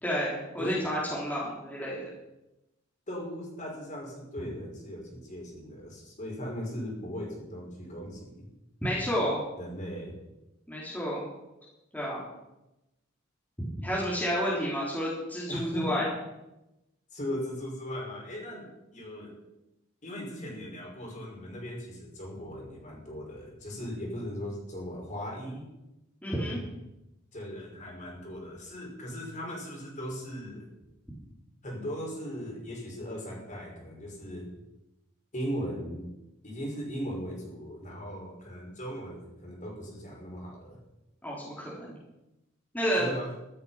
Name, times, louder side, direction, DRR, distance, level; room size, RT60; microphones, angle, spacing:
voice 1, 0.0-2.1 8.8-9.4 10.7-11.2 11.9-12.2 13.6-16.1 26.2-26.6 41.2-41.9 42.7-43.1, equal, 10° left, -6 dB, 3.7 m, -30 dB
voice 2, 3.1-8.4 9.6-10.1 15.5-16.0 17.1-19.4 20.0-25.6 27.3-30.7 31.6-34.5 35.3-36.1 36.4-40.8 43.0-43.3, equal, 35° left, -1 dB, 5.5 m, -38 dB
14.0 x 12.5 x 5.8 m, 0.95 s
head